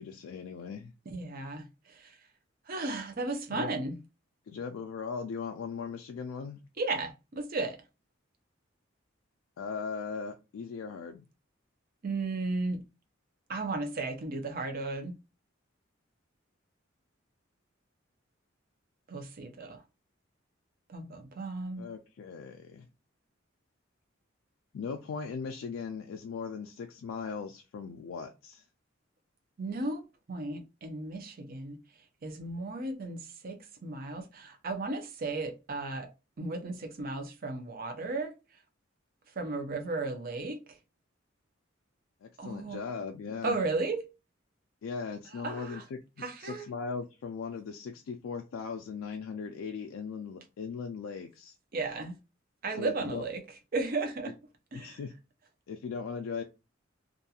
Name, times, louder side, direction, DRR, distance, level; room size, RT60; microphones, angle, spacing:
voice 1, 0.0-0.9 3.5-3.7 4.5-6.6 9.6-11.3 21.8-22.9 24.7-28.6 42.2-43.6 44.8-46.0 46.4-51.6 52.8-53.2 54.7-55.1 55.7-56.4, left 5 dB, 90° left, 0.3 m, -38 dB
voice 2, 1.1-2.1 2.7-4.0 6.8-7.8 12.0-12.8 13.5-15.1 19.1-19.8 20.9-21.8 29.6-30.0 30.3-31.8 32.2-36.1 36.4-38.3 39.4-40.6 42.4-42.8 43.4-44.1 45.3-45.8 46.2-46.6 51.7-52.1 52.6-53.4 53.7-54.3 54.7-55.0, right 3 dB, 45° right, 0.6 m, -35 dB
2.5 x 2.3 x 2.7 m
head